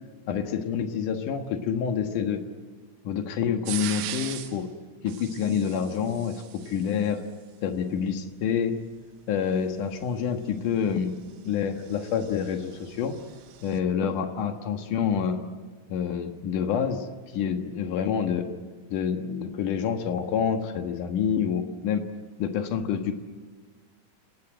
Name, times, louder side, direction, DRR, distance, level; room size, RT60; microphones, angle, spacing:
voice 1, 0.3-2.4 3.0-4.7 5.0-7.2 7.6-8.8 9.3-11.1 11.4-13.1 13.6-15.4 15.9-17.1 17.3-18.5 18.9-22.0 22.4-23.1, left 7 dB, 65° left, 5 dB, 2.1 m, -27 dB
sound 1, 3.7-4.6 5.1-7.1 9.7-13.8, right 12 dB, 85° right, 3.8 m, -40 dB
27.0 x 19.0 x 9.0 m, 1.5 s
omnidirectional pair, 5.6 m